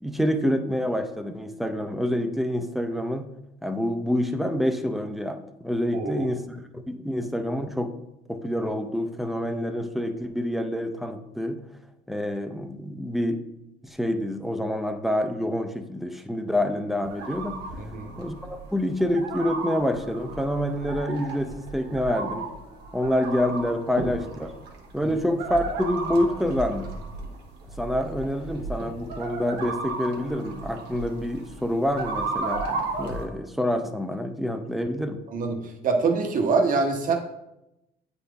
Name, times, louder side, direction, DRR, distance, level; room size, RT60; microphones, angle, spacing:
voice 1, 0.0-3.3 3.6-7.9 8.3-11.6 12.1-13.4 13.8-17.6 18.2-22.5 22.9-24.5 24.9-26.9 27.8-35.2, left 1 dB, ahead, 7 dB, 0.5 m, -27 dB
voice 2, 5.9-6.3 17.8-18.1 35.3-37.2, right 4 dB, 50° right, 4 dB, 1.0 m, -24 dB
sound 1, 17.0-33.3, right 3 dB, 90° right, 1.2 m, -35 dB
8.2 x 4.1 x 3.4 m, 0.88 s
cardioid pair, 110°, 17 cm